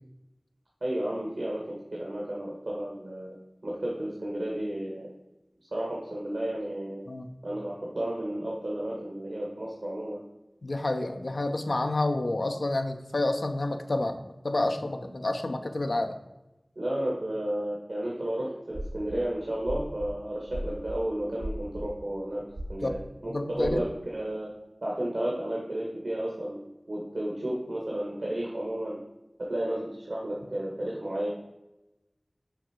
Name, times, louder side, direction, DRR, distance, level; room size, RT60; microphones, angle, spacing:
voice 1, 0.8-1.6 1.9-3.3 3.6-5.1 5.7-7.0 7.4-10.2 16.7-22.4 22.7-24.5 24.8-28.9 29.4-31.3, right 1 dB, 90° right, -4 dB, 1.6 m, -32 dB
voice 2, 10.6-16.2 22.8-22.9 23.3-23.8, left 2 dB, 85° left, 6 dB, 0.7 m, -29 dB
sound 1, 18.7-19.2 19.6-21.0 21.4-21.9 22.5-23.0 23.6-23.7, right 1 dB, 70° right, 1.1 m, -36 dB
7.0 x 4.7 x 4.4 m, 0.97 s
wide cardioid pair, 40°, 0 cm